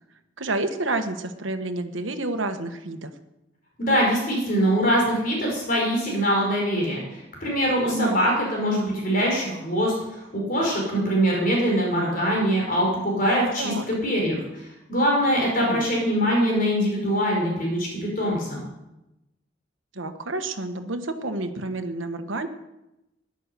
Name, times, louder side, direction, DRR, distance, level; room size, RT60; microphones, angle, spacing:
voice 1, 0.4-3.1 7.8-8.2 13.6-13.9 15.6-15.8 19.9-22.5, right 2 dB, 85° right, 7 dB, 1.4 m, -29 dB
voice 2, 3.8-13.7 14.0-18.6, equal, 45° left, -1 dB, 4.6 m, -23 dB
13.0 x 11.0 x 6.8 m, 0.91 s
head